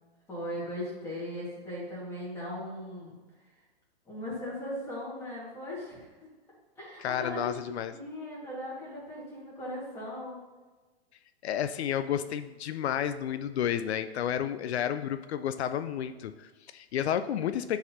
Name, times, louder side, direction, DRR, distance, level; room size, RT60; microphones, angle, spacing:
voice 1, 0.3-3.2 4.1-6.3 6.8-7.6 7.9-10.4, left 1 dB, 10° left, -6 dB, 1.7 m, -38 dB
voice 2, 7.0-7.9 11.4-17.8, left 9 dB, 85° left, 11 dB, 0.5 m, -31 dB
9.7 x 4.0 x 2.8 m, 1.3 s
hypercardioid pair, 155°, 32 cm